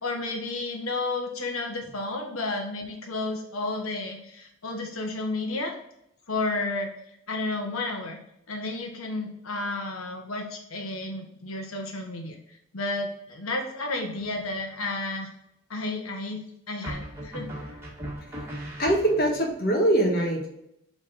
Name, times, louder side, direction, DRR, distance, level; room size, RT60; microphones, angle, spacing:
voice 1, 0.0-5.7 6.3-6.9 7.3-8.2 8.5-15.3 15.7-17.7, left 2 dB, 85° left, 2 dB, 1.5 m, -32 dB
sound 1, 14.2-14.7 16.8-19.5, right 1 dB, 10° right, 1.9 m, -38 dB
voice 2, 18.8-20.5, right 1 dB, 45° left, 0 dB, 1.8 m, -23 dB
7.4 x 3.9 x 4.3 m, 0.79 s
head